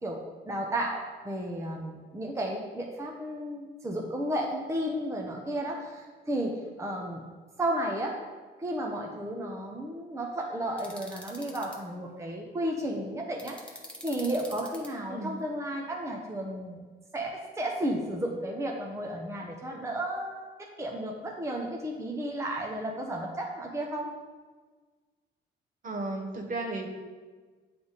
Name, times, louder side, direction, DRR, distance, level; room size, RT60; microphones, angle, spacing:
voice 1, 0.0-7.2 7.6-8.2 8.6-16.8 17.1-24.1, right 1 dB, 15° right, 0 dB, 0.7 m, -33 dB
sound 1, 10.8-11.8 13.4-14.9, left 1 dB, 5° left, 1.1 m, -44 dB
voice 2, 25.8-26.9, right 2 dB, 40° right, 2 dB, 1.1 m, -34 dB
8.5 x 3.4 x 4.0 m, 1.4 s
cardioid pair, 90°, 20 cm